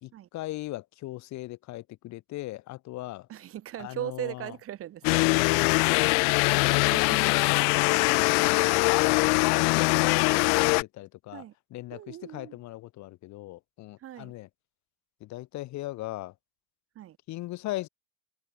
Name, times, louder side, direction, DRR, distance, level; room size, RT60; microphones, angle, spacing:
voice 1, 0.0-3.3 3.8-4.5 7.9-8.4 8.9-14.5 15.2-16.3 17.3-17.9, left 17 dB, 40° left, 1.1 m, -39 dB
voice 2, 3.3-5.2 6.9-7.3 10.1-10.2 11.3-11.5 11.9-12.6 14.0-14.3 16.9-17.2, right 12 dB, 30° right, 1.4 m, -39 dB
sound 1, 5.0-10.8, left 39 dB, 85° left, 0.6 m, -22 dB
cardioid pair, 175°, 46 cm